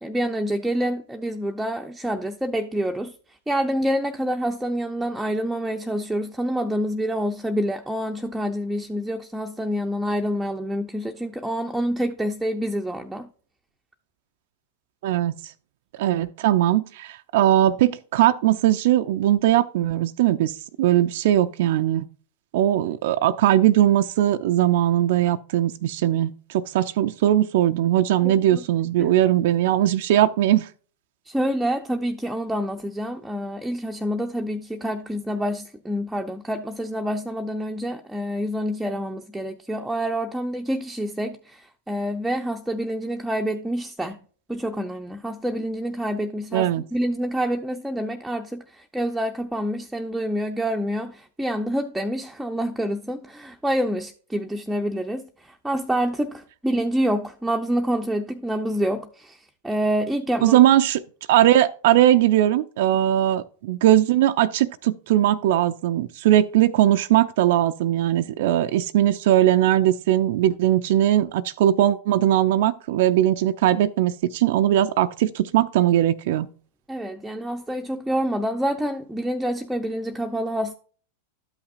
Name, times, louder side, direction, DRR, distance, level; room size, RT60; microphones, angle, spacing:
voice 1, 0.0-3.1 3.5-13.3 28.2-28.6 29.0-29.1 31.3-44.2 44.5-60.6 76.9-80.7, equal, 5° right, 0.6 m, -27 dB
voice 2, 15.0-15.3 16.0-20.5 20.8-22.1 22.5-30.7 46.5-46.8 60.4-61.0 61.3-76.5, right 12 dB, 65° right, 0.4 m, -20 dB
12.0 x 5.8 x 2.5 m
hypercardioid pair, 105°, 0 cm